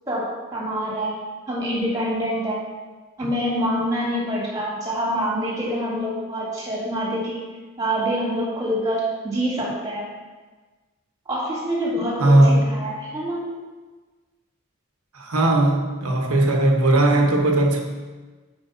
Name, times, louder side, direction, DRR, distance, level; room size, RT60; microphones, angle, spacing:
voice 1, 0.1-2.7 3.2-7.4 7.8-10.1 11.3-13.5, equal, 15° right, -5 dB, 2.1 m, -26 dB
voice 2, 12.2-12.7 15.1-17.8, right 1 dB, 90° right, 2 dB, 1.1 m, -18 dB
5.5 x 5.1 x 6.3 m, 1.3 s
head